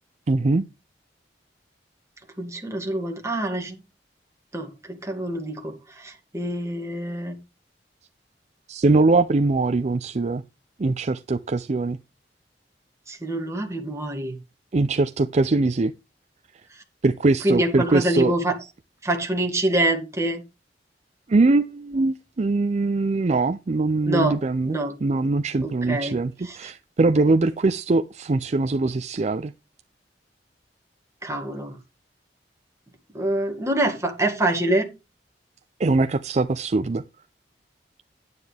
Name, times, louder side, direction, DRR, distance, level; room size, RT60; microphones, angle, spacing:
voice 1, 0.3-0.6 8.7-10.4 10.8-12.0 14.7-15.9 17.0-18.3 21.3-29.5 35.8-37.0, right 3 dB, 40° right, 0.5 m, -22 dB
voice 2, 2.4-3.7 4.5-7.4 13.1-14.4 16.7-16.8 17.4-18.6 19.0-20.4 24.1-24.9 25.6-26.2 26.4-26.6 31.2-31.8 33.1-34.9, right 1 dB, 15° right, 2.2 m, -26 dB
9.5 x 9.5 x 3.4 m
head